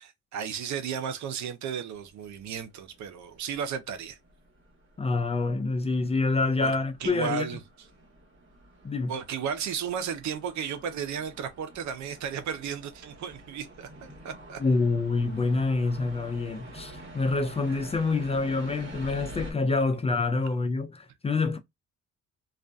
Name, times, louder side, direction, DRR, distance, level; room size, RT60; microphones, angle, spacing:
voice 1, 0.0-4.2 6.6-7.6 9.1-14.6, right 7 dB, 70° right, 0.7 m, -34 dB
sound 1, 2.0-19.5, right 1 dB, 40° right, 1.3 m, -48 dB
voice 2, 5.0-7.5 8.8-9.1 14.6-21.6, left 3 dB, 20° left, 0.4 m, -27 dB
2.4 x 2.3 x 2.3 m
cardioid pair, 90°, 30 cm